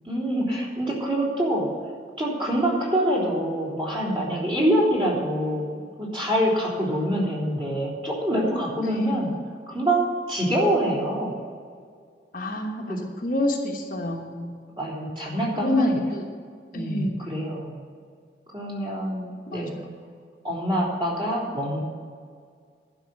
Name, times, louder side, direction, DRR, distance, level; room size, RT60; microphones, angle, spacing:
voice 1, 0.1-1.7 2.2-9.3 9.7-11.3 12.9-13.0 14.8-15.9 16.7-17.8 18.5-19.7 20.4-21.8, right 1 dB, 30° right, -5 dB, 3.7 m, -25 dB
voice 2, 8.8-9.3 12.3-14.5 15.6-16.2 16.7-17.3 19.5-20.0, left 1 dB, 50° left, 1 dB, 1.2 m, -28 dB
11.5 x 6.0 x 8.3 m, 2.1 s
head